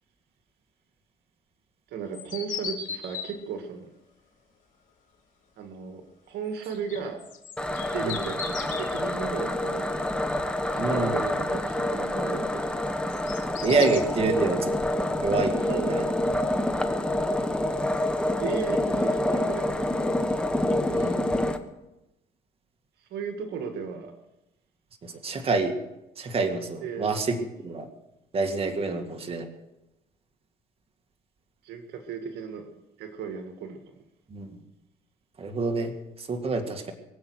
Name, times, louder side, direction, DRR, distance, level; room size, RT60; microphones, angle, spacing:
voice 1, 1.9-3.9 5.6-7.2 7.7-10.1 10.7-12.8 14.3-14.6 15.5-16.1 18.3-20.0 23.1-24.1 26.8-27.1 28.8-29.1 31.6-32.7 33.0-33.8, right 6 dB, 75° right, 6 dB, 1.8 m, -36 dB
sound 1, 2.1-3.3 6.7-9.0 12.9-14.0, left 6 dB, 50° left, 3.0 m, -37 dB
sound 2, 7.6-21.6, left 1 dB, 5° left, 1.2 m, -27 dB
voice 2, 10.8-11.2 12.4-12.5 13.6-14.6 15.2-15.6 15.9-16.1 20.9-21.2 25.0-25.7 26.2-27.4 27.6-27.9 28.3-29.5 34.3-34.6 35.4-36.9, right 4 dB, 35° right, 4 dB, 2.1 m, -27 dB
23.5 x 7.9 x 6.4 m, 0.93 s
cardioid pair, 110°, 17 cm